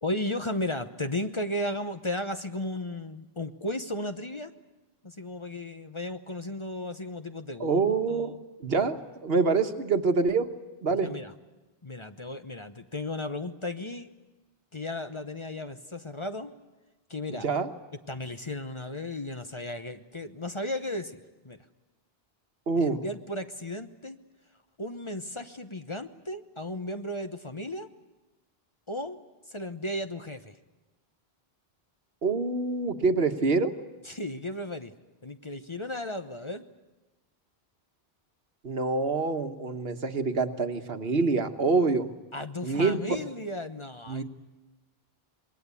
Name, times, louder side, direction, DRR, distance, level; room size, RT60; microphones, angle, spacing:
voice 1, 0.0-4.5 5.0-7.8 8.1-8.4 8.8-9.0 10.9-11.3 11.8-14.1 14.7-16.5 17.1-17.5 18.1-21.6 22.8-24.2 24.8-27.9 28.9-29.2 29.5-30.6 34.0-34.9 35.2-36.7 42.3-44.2, left 1 dB, 30° left, 8 dB, 1.0 m, -35 dB
voice 2, 7.6-8.3 8.6-10.5 10.8-11.1 17.4-17.7 22.7-23.0 32.2-33.7 38.6-42.1 42.6-43.0 44.1-44.2, right 4 dB, 70° right, 8 dB, 1.5 m, -26 dB
26.5 x 21.5 x 8.4 m, 1.1 s
omnidirectional pair, 1.1 m